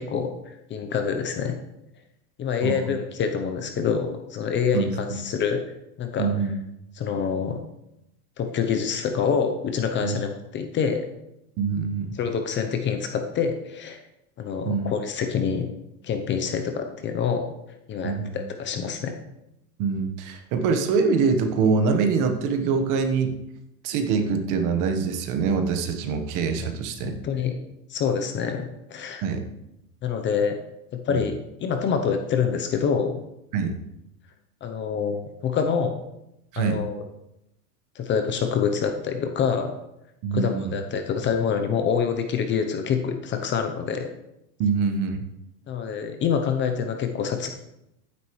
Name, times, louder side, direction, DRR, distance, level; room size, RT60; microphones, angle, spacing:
voice 1, 0.0-1.6 2.4-5.6 6.0-6.3 6.9-7.6 8.4-11.1 12.1-14.0 14.4-15.7 16.0-17.5 17.9-19.1 26.6-26.7 27.0-27.5 27.9-29.2 30.0-30.6 30.9-33.2 34.6-36.0 36.6-37.0 37.9-39.8 40.3-44.1 45.7-47.5, left 6 dB, 25° left, 6 dB, 0.7 m, -26 dB
voice 2, 4.7-5.2 6.2-6.5 10.0-10.2 11.6-12.2 14.6-14.9 18.0-18.4 19.8-23.3 23.8-27.1 29.2-29.4 31.1-31.2 33.5-33.7 36.5-36.8 40.2-40.7 44.6-45.2, right 5 dB, 45° right, 7 dB, 1.3 m, -24 dB
11.0 x 9.7 x 3.2 m, 0.86 s
supercardioid pair, 140°, 46 cm